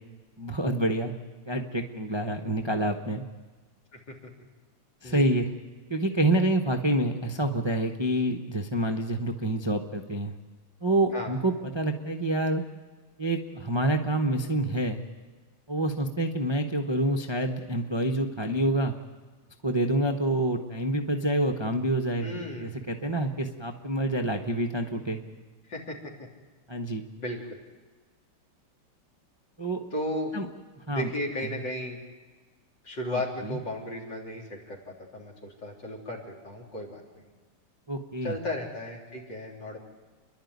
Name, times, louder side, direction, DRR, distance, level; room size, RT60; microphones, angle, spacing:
voice 1, 0.4-1.2 1.5-3.2 5.0-5.5 5.9-10.3 10.8-12.6 13.2-15.0 15.7-18.9 19.6-25.2 26.7-27.0 29.6-29.8 30.3-30.5 30.9-31.1 33.1-33.6 37.9-38.4, right 1 dB, 35° right, 3 dB, 0.4 m, -27 dB
voice 2, 22.2-22.9 25.7-26.0 27.2-27.6 29.9-30.3 30.9-32.0 32.8-37.0 38.2-39.8, left 1 dB, 55° left, 1 dB, 4.1 m, -35 dB
29.0 x 11.5 x 9.4 m, 1.4 s
omnidirectional pair, 2.4 m